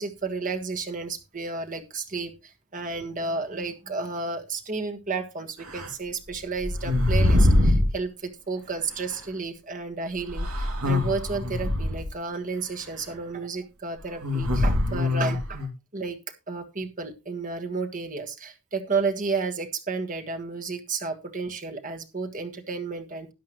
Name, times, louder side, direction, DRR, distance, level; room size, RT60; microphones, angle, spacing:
voice 1, 0.0-15.6 15.9-16.2 16.5-23.3, right 4 dB, 35° right, 5 dB, 1.6 m, -32 dB
sound 1, 5.7-5.9 6.6-7.9 9.1-9.2 10.3-12.1 14.2-15.7, left 1 dB, 85° right, 2.6 m, -23 dB
13.0 x 10.5 x 3.0 m, 0.26 s
head